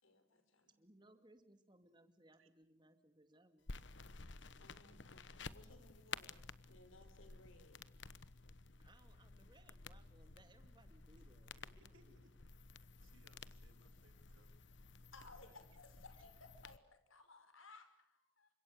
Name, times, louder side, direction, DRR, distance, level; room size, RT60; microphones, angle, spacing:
voice 1, 0.0-0.7 4.1-4.3 4.6-7.8 15.1-18.5, left 3 dB, 80° left, 8 dB, 5.4 m, -62 dB
voice 2, 0.8-3.8 8.8-12.3, right 1 dB, 20° right, 8 dB, 2.3 m, -67 dB
sound 1, 3.7-16.8, left 4 dB, 65° left, 1.1 m, -54 dB
voice 3, 11.6-14.5 15.4-15.5, right 1 dB, 80° right, 8 dB, 3.6 m, -71 dB
29.5 x 26.0 x 6.8 m, 0.68 s
head